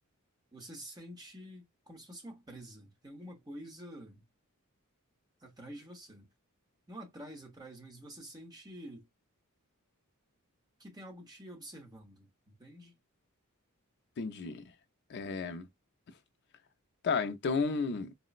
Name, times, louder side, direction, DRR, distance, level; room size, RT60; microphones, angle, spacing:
voice 1, 0.5-4.3 5.4-6.3 6.9-9.1 10.8-12.9, right 1 dB, 20° right, 0.8 m, -48 dB
voice 2, 14.2-14.6 15.1-15.7 17.0-18.1, left 4 dB, 50° left, 0.4 m, -32 dB
3.7 x 2.0 x 2.4 m
head